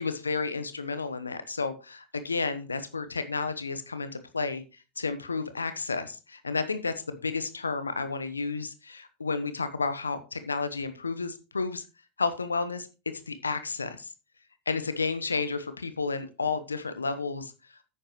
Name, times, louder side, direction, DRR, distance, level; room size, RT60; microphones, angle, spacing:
voice 1, 0.0-4.6 5.0-11.8 12.2-12.9 13.3-14.1 14.7-17.5, left 4 dB, 90° left, 12 dB, 1.0 m, -31 dB
10.5 x 8.9 x 3.0 m, 0.31 s
figure-of-eight pair, 85°, 0 cm